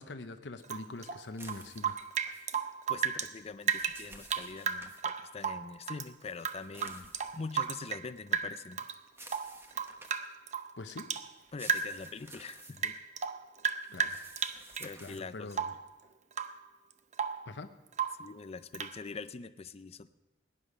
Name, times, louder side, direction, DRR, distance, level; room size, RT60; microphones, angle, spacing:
voice 1, 0.0-1.9 10.8-11.0 13.9-14.2 15.0-15.6 17.5-17.7, left 3 dB, 75° left, 8 dB, 0.7 m, -43 dB
Rain / Drip, 0.6-3.3 3.6-6.1 6.4-8.1 8.3-9.0 9.3-11.3 11.6-12.1 12.4-14.9 15.5-15.9 16.3-16.6 16.9-17.5 17.9-18.3 18.7-19.0, right 7 dB, 40° right, 0.6 m, -34 dB
sound 1, 1.3-2.5 3.4-5.0 6.2-7.8 9.1-10.3 11.4-12.8 13.8-15.2, right 2 dB, 15° right, 1.0 m, -53 dB
voice 2, 2.9-8.9 11.5-13.0 14.8-15.6 18.2-20.1, left 4 dB, 35° left, 13 dB, 0.5 m, -44 dB
17.5 x 9.9 x 5.0 m, 1.1 s
head